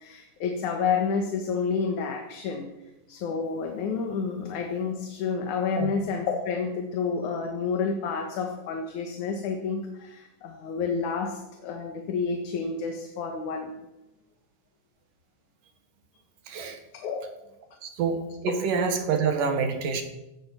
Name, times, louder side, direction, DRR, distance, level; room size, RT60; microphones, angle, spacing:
voice 1, 0.0-2.7 3.1-13.7 16.9-17.2, left 5 dB, 70° left, 2 dB, 2.8 m, -29 dB
voice 2, 16.5-16.8 17.8-20.0, right 5 dB, 80° right, 6 dB, 3.4 m, -27 dB
17.0 x 12.0 x 6.0 m, 0.95 s
omnidirectional pair, 3.7 m